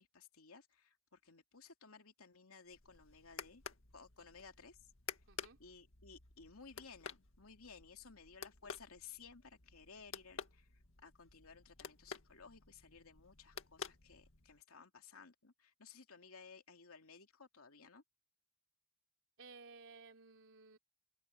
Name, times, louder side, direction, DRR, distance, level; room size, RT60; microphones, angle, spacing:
voice 1, 0.0-3.6 3.9-4.9 5.6-18.0, left 5 dB, 85° left, 2.8 m, -58 dB
sound 1, 2.7-14.6, left 6 dB, 65° left, 2.0 m, -52 dB
voice 2, 5.3-5.6 19.4-20.8, right 4 dB, 65° right, 3.8 m, -57 dB
head